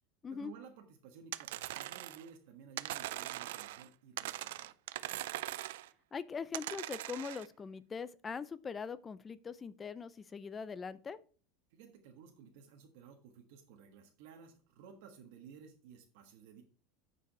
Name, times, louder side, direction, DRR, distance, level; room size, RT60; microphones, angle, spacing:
voice 1, 0.3-4.7 5.0-5.2 11.7-16.6, right 7 dB, 65° right, 2 dB, 1.4 m, -55 dB
sound 1, 1.3-2.3 2.8-3.9 4.2-5.9 6.5-7.5, right 15 dB, 80° right, 0.4 m, -41 dB
voice 2, 6.1-11.2, left 5 dB, 15° left, 16 dB, 0.5 m, -42 dB
8.9 x 4.9 x 4.7 m, 0.40 s
supercardioid pair, 160°, 0 cm